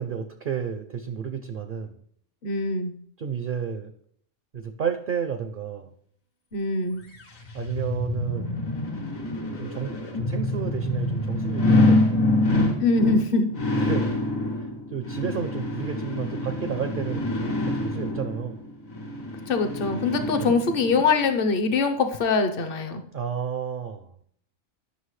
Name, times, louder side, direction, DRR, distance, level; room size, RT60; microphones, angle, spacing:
voice 1, 0.0-2.0 3.2-3.9 4.5-5.9 7.5-8.7 9.6-12.3 13.7-14.2 14.6-18.6 20.4-20.5 23.1-24.1, right 7 dB, 55° right, 7 dB, 0.6 m, -31 dB
voice 2, 2.4-2.9 6.5-7.1 12.8-13.5 19.5-23.0, left 4 dB, 50° left, 7 dB, 0.9 m, -23 dB
sound 1, 7.1-21.0 21.5-21.6, left 2 dB, 80° left, 1.8 m, -26 dB
9.6 x 6.2 x 3.2 m, 0.64 s
omnidirectional pair, 1.4 m